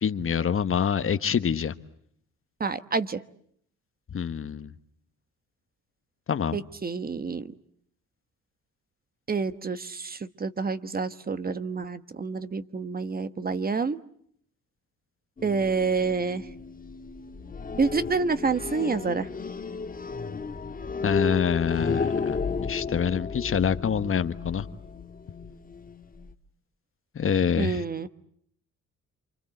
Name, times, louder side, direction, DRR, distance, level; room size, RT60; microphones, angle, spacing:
voice 1, 0.0-1.7 4.1-4.7 6.3-6.6 21.0-22.4 22.7-24.7 27.1-27.8, left 7 dB, 45° left, 12 dB, 1.4 m, -26 dB
voice 2, 2.6-3.2 6.5-7.5 9.3-14.0 15.4-16.5 17.8-19.3 27.6-28.1, right 4 dB, 30° right, 12 dB, 1.3 m, -28 dB
sound 1, 15.4-26.3, left 4 dB, 30° left, 1.7 m, -33 dB
28.0 x 25.5 x 7.9 m, 0.67 s
cardioid pair, 90°, 30 cm